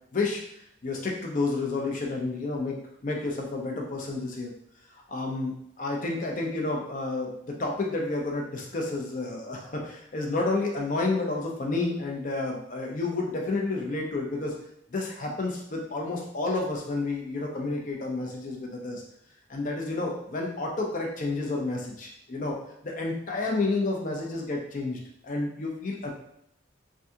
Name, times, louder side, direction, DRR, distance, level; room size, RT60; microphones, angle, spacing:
voice 1, 0.8-2.8 3.0-4.5 5.1-14.5 14.9-19.0 19.5-22.6 22.8-26.1, left 3 dB, 45° left, 0 dB, 0.6 m, -30 dB
3.5 x 2.3 x 2.7 m, 0.75 s
head